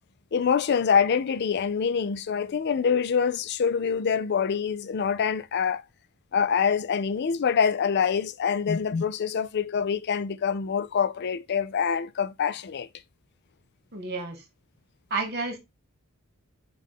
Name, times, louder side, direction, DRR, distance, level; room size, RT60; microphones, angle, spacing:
voice 1, 0.3-5.8 6.3-12.9, left 6 dB, 50° left, 0.4 m, -25 dB
voice 2, 13.9-14.4 15.1-15.6, right 3 dB, 50° right, 1.3 m, -30 dB
5.4 x 2.4 x 3.7 m
head